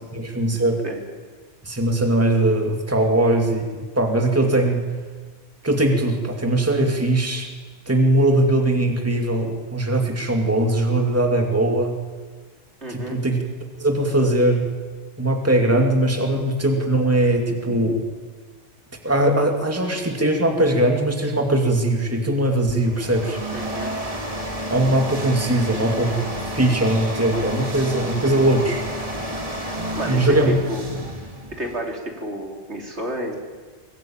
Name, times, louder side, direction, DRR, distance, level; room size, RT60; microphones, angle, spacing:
voice 1, 0.1-0.8 1.6-4.8 5.6-7.5 7.9-11.9 12.9-13.4 13.8-14.6 15.2-18.0 19.0-23.4 24.7-26.3 26.5-28.8 30.1-30.5, right 1 dB, 10° right, 3 dB, 2.4 m, -20 dB
voice 2, 12.8-13.2 17.7-17.8 23.5-24.0 29.9-30.4 30.7-31.2 31.6-33.4, right 1 dB, 70° right, 1 dB, 3.7 m, -31 dB
sound 1, 22.7-31.9, equal, 30° right, 2.4 m, -30 dB
23.5 x 19.5 x 8.9 m, 1.4 s
omnidirectional pair, 1.2 m